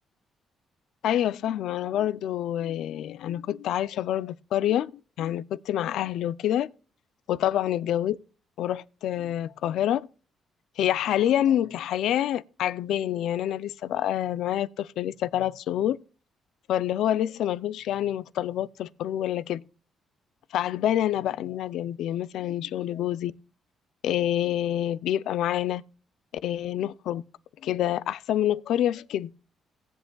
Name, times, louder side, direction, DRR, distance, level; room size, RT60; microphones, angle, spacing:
voice 1, 1.0-6.7 7.3-8.2 8.6-10.1 10.8-16.0 16.7-19.6 20.5-23.3 24.0-25.8 26.4-27.2 27.6-29.3, left 11 dB, 80° left, 0.4 m, -27 dB
18.5 x 8.0 x 2.3 m
cardioid pair, 90°, 0 cm